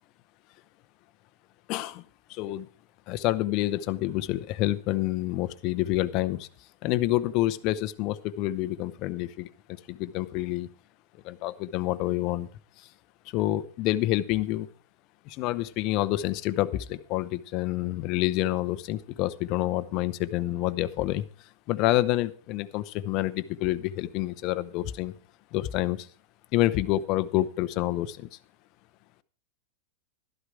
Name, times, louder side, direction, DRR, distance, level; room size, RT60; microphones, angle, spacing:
voice 1, 1.7-2.0 2.3-2.7 3.1-6.5 6.8-9.5 9.9-10.7 11.2-12.5 13.3-14.7 15.3-21.2 21.7-25.1 25.5-26.1 26.5-28.3, left 15 dB, 35° left, 14 dB, 0.7 m, -28 dB
13.0 x 11.5 x 4.8 m, 0.38 s
supercardioid pair, 170°, 0 cm